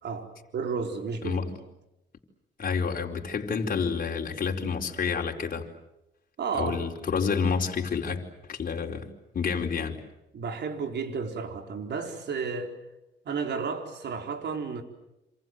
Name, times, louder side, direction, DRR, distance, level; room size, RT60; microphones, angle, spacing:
voice 1, 0.0-1.4 6.4-6.8 10.3-12.7 13.2-14.8, right 5 dB, 60° right, 5 dB, 4.4 m, -32 dB
voice 2, 2.6-5.7 6.5-10.0, left 5 dB, 45° left, 1 dB, 4.6 m, -29 dB
28.0 x 27.0 x 7.9 m, 0.89 s
cardioid pair, 90°, 20 cm